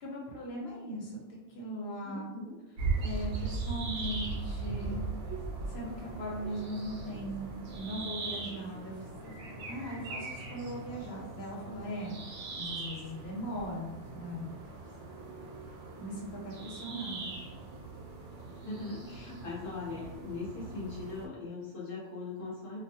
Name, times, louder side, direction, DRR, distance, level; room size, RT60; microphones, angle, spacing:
voice 1, 0.0-2.3 3.0-5.0 5.7-12.2 12.6-14.5 16.0-17.6, equal, 60° left, -3 dB, 1.0 m, -39 dB
voice 2, 2.0-2.5 18.4-22.8, left 3 dB, 30° left, -7 dB, 0.9 m, -40 dB
sound 1, 2.8-21.3, right 3 dB, 70° right, 0.8 m, -39 dB
2.4 x 2.3 x 2.8 m, 1.1 s
omnidirectional pair, 1.2 m